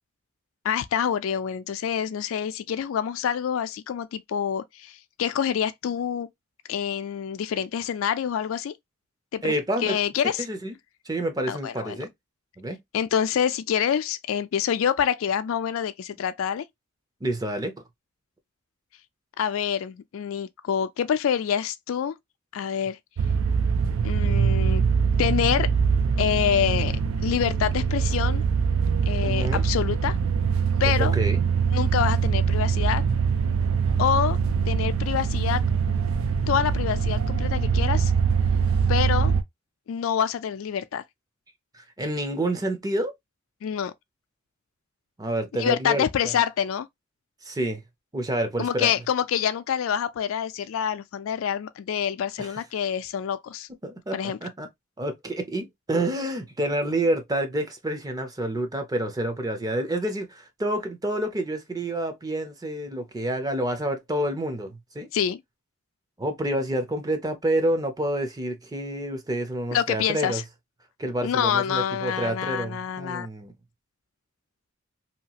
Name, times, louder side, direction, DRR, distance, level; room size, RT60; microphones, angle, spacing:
voice 1, 0.6-6.3 6.7-8.7 9.3-9.5 9.8-10.5 11.5-12.0 12.9-16.7 19.4-22.2 22.5-23.0 24.0-24.9 25.2-25.7 26.2-28.4 29.1-30.2 30.8-31.2 31.7-33.0 34.0-34.4 34.7-35.6 36.5-38.1 38.9-39.3 39.9-41.0 43.6-43.9 45.6-46.9 48.6-53.7 54.1-54.4 65.1-65.4 69.7-70.4 71.2-73.3, left 8 dB, 75° left, 0.3 m, -26 dB
voice 2, 9.4-10.0 10.4-10.7 11.1-12.1 12.6-12.8 17.2-17.7 29.2-29.6 31.0-31.4 41.7-43.1 45.2-46.3 47.4-47.8 48.1-48.9 52.4-52.5 53.8-54.7 55.0-65.1 66.2-70.4 71.0-73.5, right 1 dB, 20° right, 0.5 m, -28 dB
sound 1, 23.2-39.4, right 6 dB, 80° right, 0.4 m, -23 dB
2.8 x 2.3 x 2.7 m
head